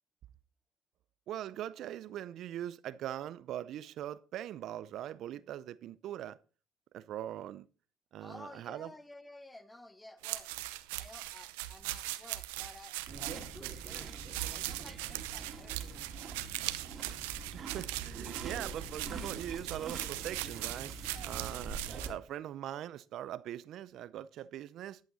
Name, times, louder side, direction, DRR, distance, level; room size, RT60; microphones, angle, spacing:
voice 1, 1.3-6.4 6.9-7.7 8.1-8.9 17.5-20.9 21.2-25.0, right 11 dB, 60° right, 0.5 m, -41 dB
voice 2, 8.2-10.5 10.9-13.0 13.2-15.8, left 2 dB, 15° left, 1.1 m, -53 dB
sound 1, 10.2-22.1, right 17 dB, 90° right, 0.8 m, -40 dB
sound 2, 13.1-22.1, right 4 dB, 45° right, 2.4 m, -44 dB
11.0 x 8.9 x 4.1 m
supercardioid pair, 85°, 0 cm